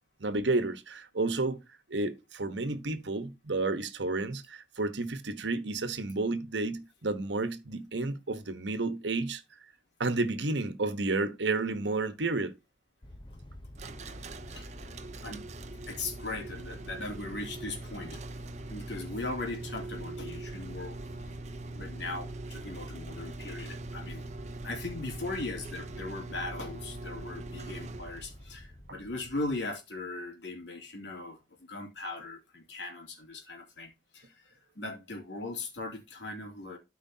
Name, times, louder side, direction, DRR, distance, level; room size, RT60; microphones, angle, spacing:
voice 1, 0.2-1.6 1.9-9.4 10.0-12.5, right 3 dB, 80° right, 1.1 m, -31 dB
sound 1, 13.0-29.6, left 1 dB, 25° left, 0.8 m, -47 dB
sound 2, 13.8-28.4, right 3 dB, 40° right, 0.7 m, -43 dB
voice 2, 15.9-18.2 18.7-21.0 21.7-24.3 24.6-36.8, left 2 dB, 80° left, 2.9 m, -39 dB
13.0 x 5.0 x 2.8 m
head